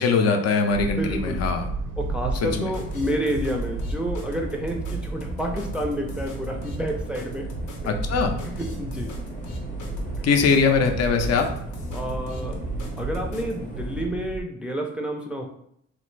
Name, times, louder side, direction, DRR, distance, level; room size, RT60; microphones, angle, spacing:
voice 1, 0.0-1.7 2.6-2.7 7.9-8.3 10.2-11.5, left 5 dB, 60° left, 5 dB, 0.6 m, -21 dB
sound 1, 0.7-14.4, right 3 dB, 80° right, 0.5 m, -33 dB
voice 2, 1.0-1.4 2.0-7.5 7.8-7.9 8.6-9.1 11.9-12.6 13.0-15.5, equal, 5° right, 1 dB, 0.4 m, -29 dB
sound 2, 2.4-13.5, equal, 85° left, 0.8 m, -38 dB
sound 3, 2.4-14.0, left 1 dB, 25° left, 0.8 m, -42 dB
3.1 x 2.5 x 3.1 m, 0.71 s
cardioid pair, 90°, 30 cm